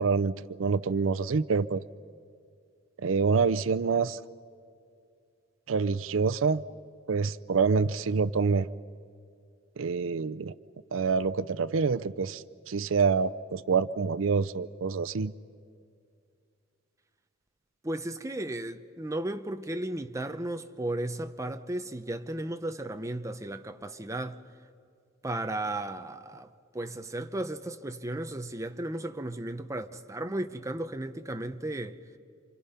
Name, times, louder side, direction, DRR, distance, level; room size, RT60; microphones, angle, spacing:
voice 1, 0.0-1.8 3.0-4.2 5.7-6.6 7.1-8.7 9.8-10.5 10.9-15.3, right 5 dB, 90° right, 0.5 m, -26 dB
voice 2, 17.8-24.4 25.2-32.0, right 1 dB, 15° right, 0.8 m, -35 dB
29.5 x 26.0 x 5.7 m
head